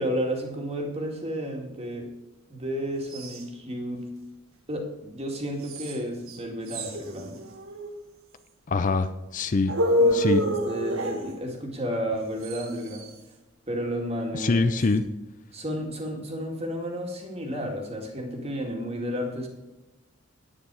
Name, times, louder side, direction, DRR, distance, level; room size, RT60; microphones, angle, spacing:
voice 1, 0.0-2.1 2.5-4.1 4.7-7.4 10.0-13.1 13.7-14.7 15.5-19.5, equal, 30° right, 1 dB, 2.3 m, -32 dB
sound 1, 3.1-3.4 5.6-6.0 6.3-6.4 6.7-7.9 9.7-11.3 12.4-13.1, equal, 85° right, 1.7 m, -27 dB
voice 2, 8.7-9.7 10.1-10.4 14.3-15.0, left 3 dB, 40° left, 11 dB, 0.5 m, -24 dB
10.5 x 9.6 x 4.8 m, 1.0 s
head